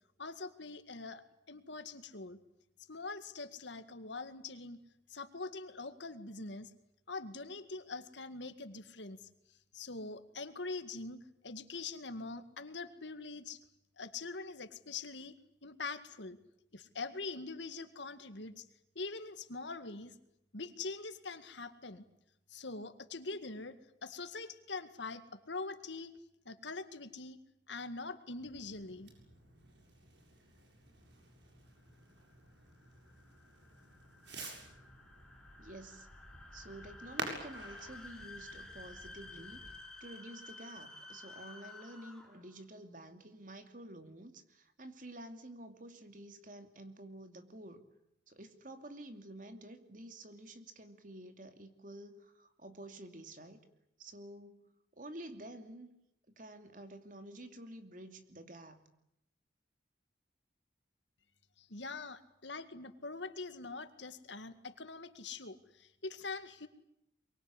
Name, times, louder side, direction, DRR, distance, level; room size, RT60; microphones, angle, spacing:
voice 1, 0.2-2.4 2.9-4.8 5.1-6.7 7.1-9.3 9.7-13.6 14.0-15.4 15.6-16.4 16.7-18.7 19.0-20.1 20.5-22.0 22.5-23.8 24.0-26.1 26.5-27.4 27.7-29.1 61.6-66.7, left 3 dB, 80° left, 10 dB, 2.1 m, -43 dB
Fireworks, 28.4-39.8, right 2 dB, 75° right, 7.4 m, -50 dB
sound 1, 31.9-42.5, left 3 dB, 5° left, 3.0 m, -53 dB
voice 2, 35.6-36.1 36.5-47.8 48.3-53.6 54.0-55.9 56.4-58.8, right 1 dB, 45° right, 7 dB, 2.7 m, -50 dB
23.5 x 23.5 x 9.9 m, 0.80 s
head